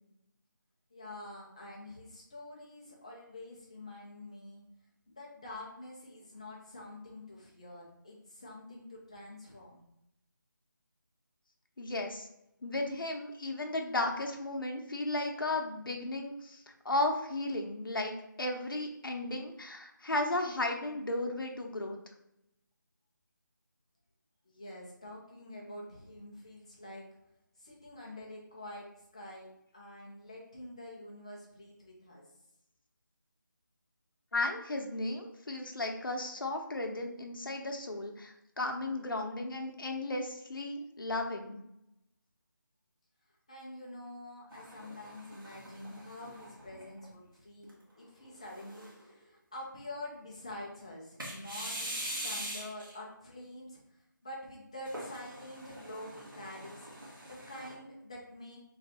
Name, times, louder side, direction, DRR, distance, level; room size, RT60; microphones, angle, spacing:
voice 1, 0.9-4.6 5.1-9.8 24.4-27.1 27.6-32.3 43.5-51.9 52.2-53.8 54.2-56.9 57.3-58.6, left 1 dB, 15° left, -4 dB, 0.5 m, -47 dB
voice 2, 11.8-12.3 12.6-22.0 34.3-41.6, left 2 dB, 85° left, 2 dB, 0.7 m, -35 dB
sound 1, 44.5-47.1 47.6-47.7 48.4-49.1 51.2-52.9 54.8-57.7, right 1 dB, 80° right, 1.5 m, -43 dB
3.2 x 2.6 x 4.0 m, 0.82 s
figure-of-eight pair, 175°, 11 cm